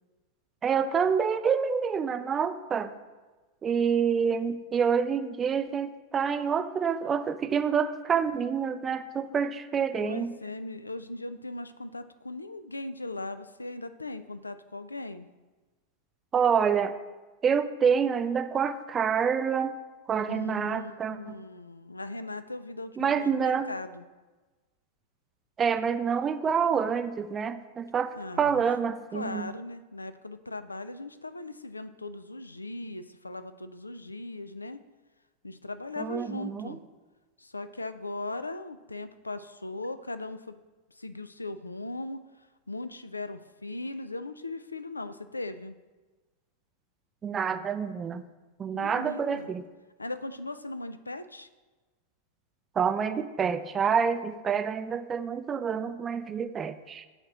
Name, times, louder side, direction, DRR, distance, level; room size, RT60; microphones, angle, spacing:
voice 1, 0.6-2.9 3.6-10.3 16.3-17.0 17.4-19.8 20.1-21.4 23.0-23.7 25.6-29.5 36.0-36.8 47.2-48.2 48.6-49.6 52.8-57.1, right 6 dB, 20° right, 11 dB, 0.4 m, -27 dB
voice 2, 10.0-15.3 20.2-24.0 28.1-28.6 29.1-34.8 35.4-36.8 37.4-40.6 41.0-42.2 42.7-45.7 48.7-49.5 50.0-51.5, left 2 dB, 80° left, 12 dB, 0.3 m, -38 dB
7.8 x 2.9 x 5.8 m, 1.2 s
figure-of-eight pair, 90°, 0 cm